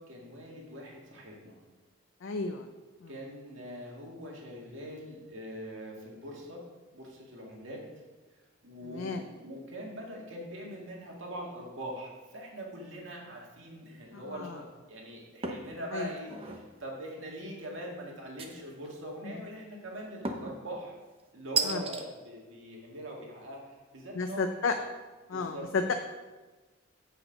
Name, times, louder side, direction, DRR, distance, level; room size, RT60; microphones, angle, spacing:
voice 1, 0.0-1.6 3.1-6.6 6.9-7.8 8.6-20.9 21.3-24.4 25.3-25.7, equal, 65° right, -2 dB, 2.0 m, -42 dB
voice 2, 2.2-2.7 3.0-3.1 8.8-9.2 14.1-14.6 15.9-16.1 19.2-19.3 21.6-21.8 24.1-24.7 25.3-25.9, left 4 dB, 70° left, 5 dB, 0.5 m, -32 dB
sound 1, 15.4-15.7 16.2-16.7 18.4-18.9 20.2-20.6 21.6-22.0, right 4 dB, 30° right, 0.7 m, -33 dB
8.3 x 5.8 x 5.2 m, 1.2 s
head